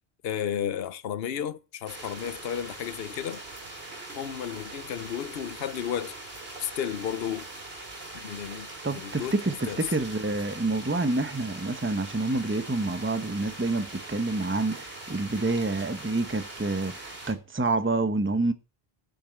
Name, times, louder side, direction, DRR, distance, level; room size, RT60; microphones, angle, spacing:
voice 1, 0.2-3.4 4.1-6.2 6.6-7.5 8.1-9.8, left 9 dB, 70° left, 1.0 m, -33 dB
sound 1, 1.9-17.3, right 2 dB, 70° right, 3.1 m, -42 dB
voice 2, 8.8-18.5, right 2 dB, 15° right, 0.9 m, -28 dB
9.2 x 7.8 x 7.6 m
omnidirectional pair, 1.0 m